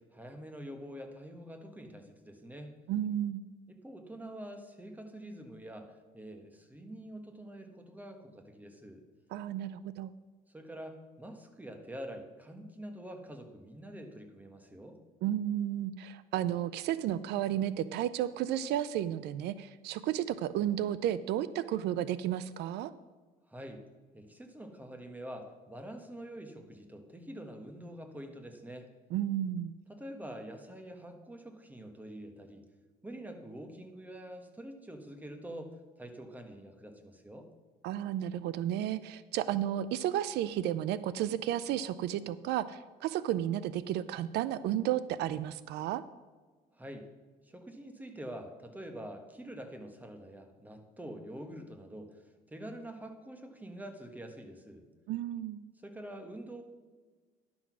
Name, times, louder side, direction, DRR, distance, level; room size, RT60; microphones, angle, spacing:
voice 1, 0.0-2.7 3.7-9.0 10.5-15.0 23.5-23.8 24.1-28.9 29.9-32.6 33.0-37.5 46.7-47.1 47.4-54.8 55.8-56.6, right 1 dB, 10° right, 5 dB, 1.5 m, -46 dB
voice 2, 2.9-3.4 9.3-10.1 15.2-22.9 29.1-29.7 37.8-46.0 55.1-55.6, right 11 dB, 80° right, 16 dB, 0.4 m, -32 dB
11.0 x 6.2 x 6.1 m, 1.4 s
cardioid pair, 110°, 17 cm